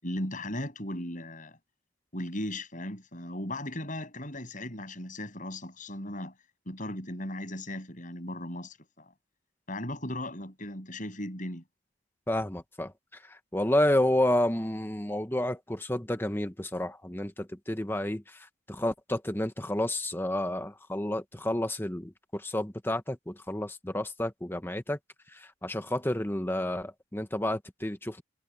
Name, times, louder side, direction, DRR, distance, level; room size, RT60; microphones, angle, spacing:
voice 1, 0.0-1.6 2.1-6.3 6.7-9.1 9.7-11.6, left 1 dB, 40° left, 7.4 m, -37 dB
voice 2, 12.3-12.9 13.3-18.4 18.7-25.0 25.3-28.2, left 1 dB, 10° left, 1.1 m, -30 dB
head